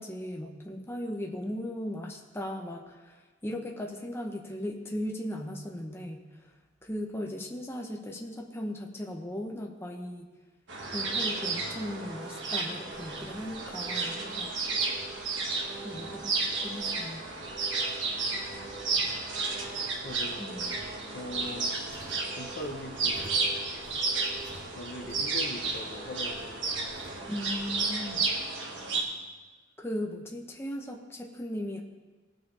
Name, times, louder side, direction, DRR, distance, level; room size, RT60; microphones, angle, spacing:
voice 1, 0.0-6.5 6.8-10.3 10.9-14.5 15.8-17.3 20.4-20.7 27.3-28.3 29.8-31.8, left 1 dB, 15° left, 1 dB, 0.9 m, -37 dB
sound 1, 10.7-29.0, right 3 dB, 65° right, 1.8 m, -32 dB
sound 2, 12.8-28.1, equal, 50° right, 3.5 m, -53 dB
voice 2, 20.0-20.4 20.9-21.8 22.3-23.5 24.7-26.7, left 1 dB, 55° left, 4 dB, 0.9 m, -41 dB
18.5 x 6.3 x 3.4 m, 1.3 s
head